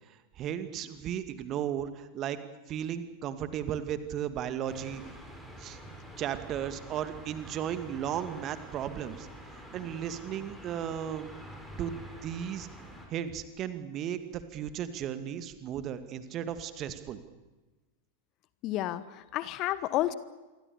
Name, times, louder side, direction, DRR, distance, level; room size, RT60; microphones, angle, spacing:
voice 1, 0.1-2.4 2.7-5.0 5.6-5.8 6.2-9.3 9.7-11.3 11.8-12.7 13.1-17.2, right 9 dB, 35° right, 11 dB, 2.3 m, -35 dB
sound 1, 4.6-13.1, right 1 dB, ahead, 5.8 m, -47 dB
voice 2, 18.6-20.1, left 14 dB, 40° left, 16 dB, 1.2 m, -31 dB
27.5 x 23.5 x 7.1 m, 1.2 s
figure-of-eight pair, 90°, 0 cm